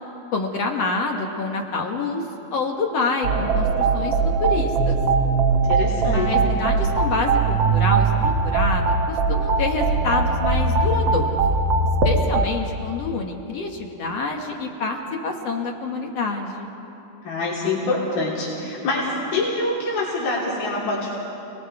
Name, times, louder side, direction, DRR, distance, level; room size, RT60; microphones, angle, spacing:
voice 1, 0.3-2.2 2.5-5.0 6.1-11.4 12.0-16.7, left 4 dB, 60° left, 2 dB, 1.9 m, -27 dB
sound 1, 3.2-12.5, right 4 dB, 80° right, 1.0 m, -20 dB
voice 2, 5.5-6.5 17.2-21.2, left 2 dB, 90° left, -6 dB, 5.2 m, -25 dB
30.0 x 20.0 x 4.8 m, 2.9 s
omnidirectional pair, 4.1 m